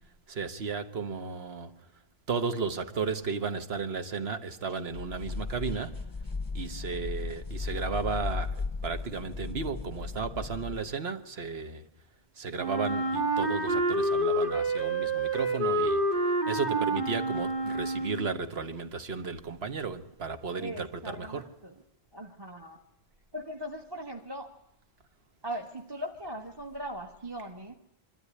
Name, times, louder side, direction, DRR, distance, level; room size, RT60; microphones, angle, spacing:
voice 1, 0.3-1.8 2.3-6.1 6.5-11.9 12.3-21.5, right 5 dB, 75° right, 1.5 m, -34 dB
sound 1, 4.9-10.9, left 4 dB, 20° left, 0.8 m, -36 dB
Wind instrument woodwind instrument, 12.6-18.4, right 2 dB, 55° right, 2.6 m, -28 dB
voice 2, 20.6-21.7 22.1-22.8 23.3-24.5 25.4-27.7, equal, 25° right, 1.3 m, -39 dB
24.5 x 13.5 x 9.6 m
omnidirectional pair, 1.1 m